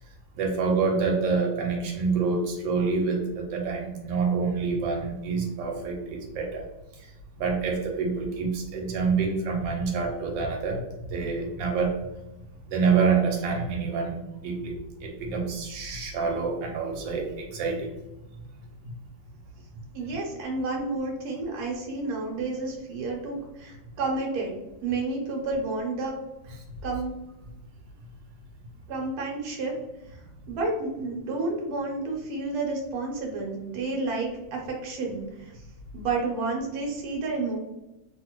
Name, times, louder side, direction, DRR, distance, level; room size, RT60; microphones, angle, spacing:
voice 1, 0.4-6.6 7.4-10.8 11.1-12.0 12.7-14.7 15.0-17.9, right 5 dB, 85° right, 1 dB, 1.3 m, -27 dB
voice 2, 19.9-24.6 24.8-26.1 26.8-27.1 28.9-29.7 30.5-35.6 35.9-37.6, right 3 dB, 60° right, 0 dB, 1.2 m, -30 dB
3.0 x 2.5 x 2.9 m, 0.96 s
omnidirectional pair, 1.9 m